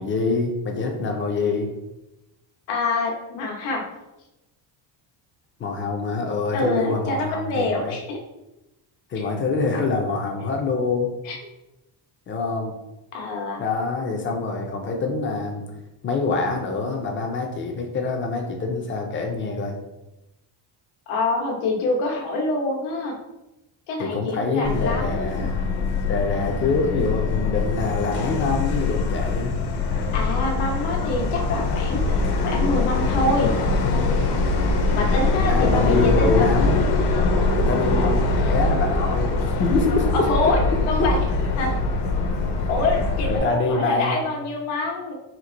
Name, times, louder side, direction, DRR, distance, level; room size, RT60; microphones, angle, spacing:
voice 1, 0.0-1.7 5.6-7.9 9.1-11.1 12.3-12.7 13.6-15.6 16.0-19.7 24.0-25.6 26.1-29.5 35.5-36.8 37.5-40.3 41.0-41.1 43.3-44.2, left 3 dB, 30° left, 3 dB, 0.4 m, -25 dB
voice 2, 2.7-3.9 6.5-8.2 9.2-9.3 11.2-11.4 13.1-13.6 21.1-23.2 23.9-25.5 30.1-32.0 32.4-33.5 34.9-36.6 40.1-41.2 41.6-41.7 42.7-45.1, left 2 dB, 90° left, 0 dB, 1.1 m, -26 dB
Subway metro underground, 24.6-43.4, left 3 dB, 55° left, 0.7 m, -23 dB
4.4 x 2.5 x 3.8 m, 0.96 s
cardioid pair, 170°, 48 cm